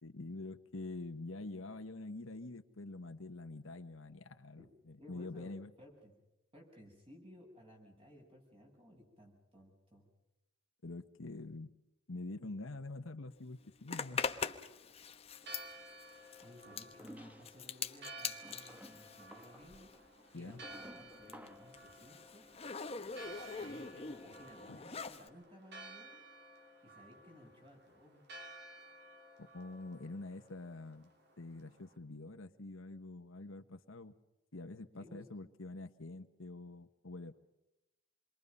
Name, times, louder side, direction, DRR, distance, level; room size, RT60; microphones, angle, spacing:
voice 1, 0.0-5.7 10.8-11.7 12.1-14.2 20.3-20.6 24.7-24.8 29.4-31.1 31.4-34.1 34.5-37.3, left 2 dB, 80° left, 8 dB, 1.2 m, -46 dB
voice 2, 5.0-6.1 6.5-10.1 16.4-19.9 20.3-22.5 23.6-26.2 26.8-28.2 35.0-35.3, equal, 25° right, 0 dB, 7.7 m, -58 dB
Zipper (clothing), 13.9-20.1 20.3-25.3, left 5 dB, 30° left, 1.1 m, -43 dB
Church bell, 15.3-32.0, right 2 dB, 55° right, 2.9 m, -55 dB
sound 1, 16.7-17.7 18.3-21.8, equal, 10° right, 1.1 m, -55 dB
28.0 x 23.0 x 5.5 m, 0.93 s
head